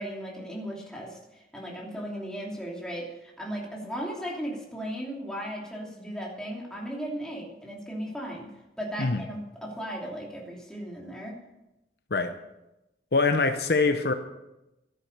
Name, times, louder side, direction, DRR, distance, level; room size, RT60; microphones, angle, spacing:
voice 1, 0.0-8.5 8.8-11.4, equal, 5° left, -3 dB, 2.9 m, -36 dB
voice 2, 13.1-14.1, left 3 dB, 55° left, 8 dB, 0.8 m, -24 dB
13.5 x 10.5 x 6.6 m, 0.96 s
head